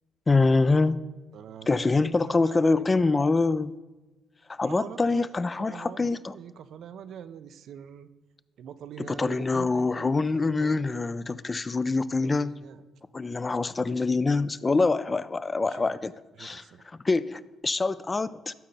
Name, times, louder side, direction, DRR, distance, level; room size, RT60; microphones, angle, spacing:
voice 1, 0.3-1.0 1.7-3.7 4.5-6.4 9.0-12.5 13.1-16.1 16.4-16.6 17.0-18.5, left 3 dB, 25° left, 16 dB, 0.3 m, -25 dB
voice 2, 1.3-3.3 4.6-8.1 8.6-10.9 12.2-12.8 15.7-15.9 16.4-16.8, right 8 dB, 70° right, 13 dB, 0.5 m, -44 dB
12.0 x 4.4 x 5.3 m, 1.2 s
cardioid pair, 90°, 0 cm